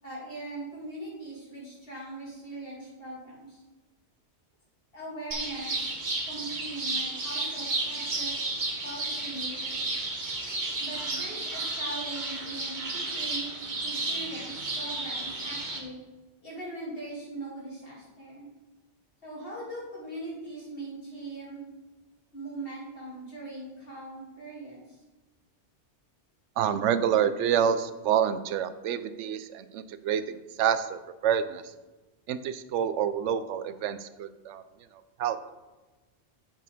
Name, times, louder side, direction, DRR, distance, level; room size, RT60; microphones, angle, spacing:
voice 1, 0.0-3.6 4.9-5.9 6.3-8.3 8.8-9.9 10.8-13.5 13.8-16.0 16.4-18.5 19.2-21.6 22.3-25.0, right 2 dB, 50° left, -6 dB, 3.2 m, -40 dB
sound 1, 5.3-15.8, right 2 dB, 45° right, 1.3 m, -32 dB
voice 2, 26.6-31.6 32.3-34.6 35.2-35.4, right 8 dB, 90° right, 12 dB, 0.9 m, -27 dB
8.3 x 6.8 x 3.6 m, 1.2 s
omnidirectional pair, 1.2 m